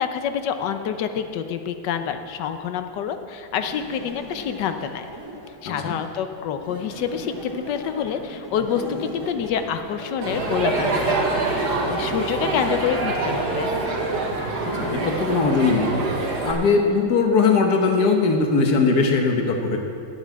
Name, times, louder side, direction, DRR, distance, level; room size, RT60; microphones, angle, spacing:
voice 1, 0.0-5.1 5.6-13.7, left 8 dB, 85° left, 8 dB, 1.4 m, -27 dB
sound 1, 3.5-5.7 6.6-10.8 11.3-13.5 14.6-15.8, right 1 dB, 15° right, 1.2 m, -38 dB
Crowd, 10.2-16.5, right 3 dB, 70° right, 2.0 m, -25 dB
voice 2, 14.7-16.1 16.5-19.8, left 4 dB, 65° left, 3 dB, 1.7 m, -20 dB
9.7 x 8.6 x 8.1 m, 2.5 s
omnidirectional pair, 1.8 m